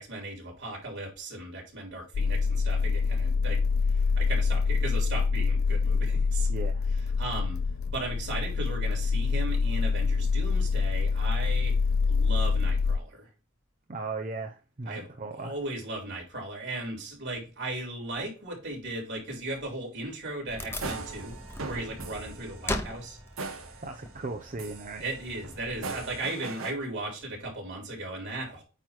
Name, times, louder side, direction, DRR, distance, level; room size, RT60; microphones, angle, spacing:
voice 1, 0.0-3.6 3.9-6.5 7.2-7.6 7.8-11.7 12.1-13.3 14.9-15.1 15.3-21.3 21.6-23.2 25.0-28.6, right 2 dB, 55° right, 4.0 m, -36 dB
sound 1, 2.1-13.0, left 4 dB, 70° left, 0.4 m, -26 dB
voice 2, 6.5-6.9 13.9-15.5 23.8-25.0, right 3 dB, 40° right, 0.7 m, -37 dB
Wood, 20.5-26.2, left 1 dB, 10° left, 0.9 m, -39 dB
sound 2, 20.7-24.3 24.6-26.7, right 4 dB, 75° right, 1.3 m, -40 dB
8.9 x 3.2 x 5.8 m
head